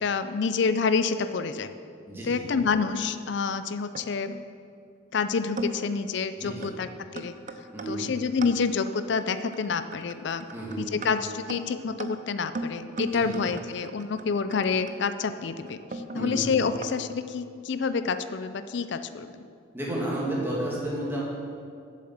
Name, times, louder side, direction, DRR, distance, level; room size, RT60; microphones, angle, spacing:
voice 1, 0.0-1.7 2.2-4.3 5.1-7.3 7.9-10.5 10.8-19.5, left 5 dB, 60° left, 11 dB, 0.4 m, -28 dB
voice 2, 2.1-2.4 6.4-6.7 7.7-8.0 10.5-10.8 13.1-13.3 16.1-16.5 19.7-21.2, right 1 dB, 10° right, -6 dB, 2.3 m, -31 dB
sound 1, 3.4-4.4 5.1-5.2 5.6-6.0 6.6-6.8 7.2-17.0, right 1 dB, 40° right, 0.5 m, -38 dB
7.6 x 7.6 x 7.3 m, 2.3 s
head